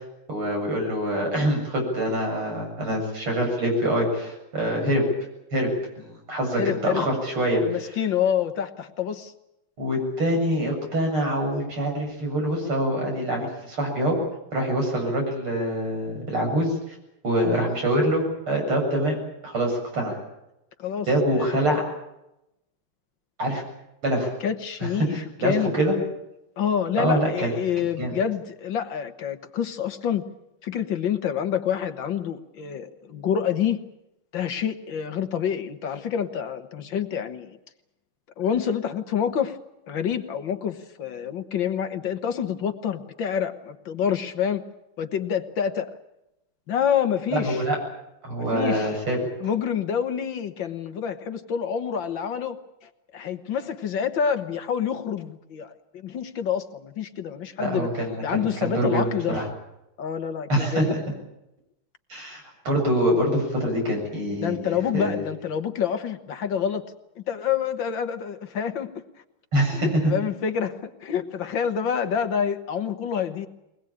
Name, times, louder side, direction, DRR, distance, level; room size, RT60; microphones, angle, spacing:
voice 1, 0.3-5.0 5.5-5.7 6.0-7.6 9.8-14.2 14.5-17.0 17.2-19.1 19.4-20.2 21.1-21.8 23.4-23.6 24.0-24.3 24.8-25.9 27.0-27.5 28.0-28.1 47.3-47.8 48.2-49.2 57.6-59.4 60.5-61.0 62.1-65.2 69.5-70.1, right 1 dB, 80° right, 1 dB, 8.5 m, -25 dB
voice 2, 6.6-7.1 7.5-9.3 17.5-17.7 20.8-21.1 21.3-21.7 24.4-25.8 26.6-30.3 30.6-33.8 34.3-37.6 38.4-39.6 39.9-44.6 45.0-45.9 46.7-47.6 48.4-49.0 49.4-57.9 58.2-59.4 60.0-61.1 64.4-69.0 69.7-73.5, left 8 dB, 65° left, 8 dB, 1.9 m, -27 dB
22.5 x 20.5 x 8.7 m, 0.89 s
omnidirectional pair, 2.4 m